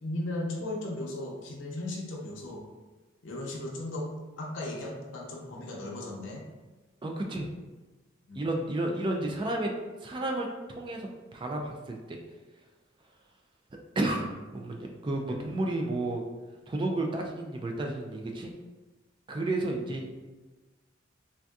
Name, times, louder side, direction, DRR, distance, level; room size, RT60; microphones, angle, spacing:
voice 1, 0.0-2.7 3.2-4.1 4.4-6.5 8.3-8.4 14.0-14.4 19.7-19.9, left 1 dB, 85° left, -1 dB, 0.6 m, -36 dB
voice 2, 7.0-7.5 8.4-9.7 10.0-12.2 14.0-16.2 16.7-18.5 19.3-20.1, right 2 dB, 25° right, 1 dB, 0.3 m, -32 dB
3.4 x 2.6 x 2.3 m, 1.2 s
head